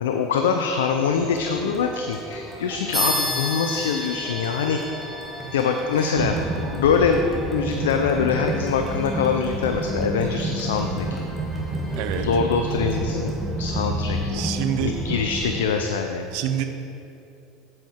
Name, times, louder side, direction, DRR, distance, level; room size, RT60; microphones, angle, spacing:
voice 1, 0.0-5.1 5.5-6.4 6.7-7.2 7.5-11.2 12.1-13.3 13.6-14.4 14.8-16.3, left 6 dB, 85° left, 5 dB, 0.5 m, -24 dB
sound 1, 1.0-15.7, right 1 dB, 25° right, 1.3 m, -31 dB
sound 2, 1.2-13.5, left 2 dB, 25° left, 1.8 m, -41 dB
sound 3, 2.9-12.9, left 1 dB, 5° left, 1.4 m, -34 dB
voice 2, 5.9-6.6 12.0-12.3 14.3-14.9 16.3-16.6, right 10 dB, 70° right, 7 dB, 0.6 m, -28 dB
7.6 x 7.3 x 4.5 m, 2.7 s
hypercardioid pair, 90°, 0 cm